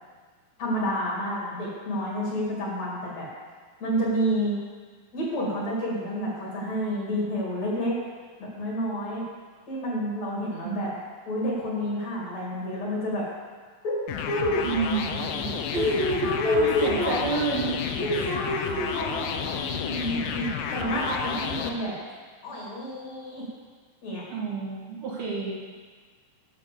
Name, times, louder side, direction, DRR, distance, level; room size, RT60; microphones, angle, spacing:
voice 1, 0.6-3.3 3.8-4.6 5.1-8.0 8.4-9.3 9.7-10.9 11.3-13.2 13.8-14.0 14.2-14.6 15.7-17.2 18.0-20.5 20.7-21.9 22.4-23.5 24.0-24.2, equal, 50° left, -5 dB, 3.6 m, -28 dB
voice 2, 10.5-10.9 14.6-16.0 16.4-17.8 18.1-18.3 20.9-21.0 24.3-25.5, right 5 dB, 90° right, -5 dB, 4.2 m, -30 dB
sound 1, 14.1-21.7, left 7 dB, 75° left, 2.1 m, -31 dB
11.0 x 6.2 x 7.0 m, 1.5 s
omnidirectional pair, 4.2 m